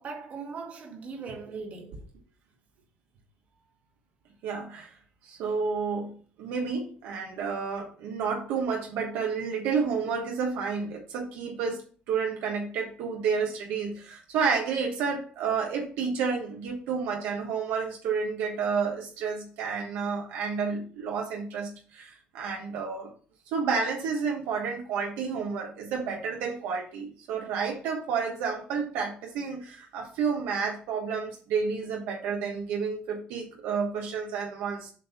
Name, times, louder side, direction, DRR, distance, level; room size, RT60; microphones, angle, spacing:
voice 1, 0.0-2.0, right 4 dB, 50° right, 1.8 m, -39 dB
voice 2, 4.4-4.9 5.2-11.8 12.1-23.1 23.5-34.9, right 5 dB, 85° right, 1.2 m, -30 dB
7.6 x 2.7 x 5.8 m
cardioid pair, 115°, 3 cm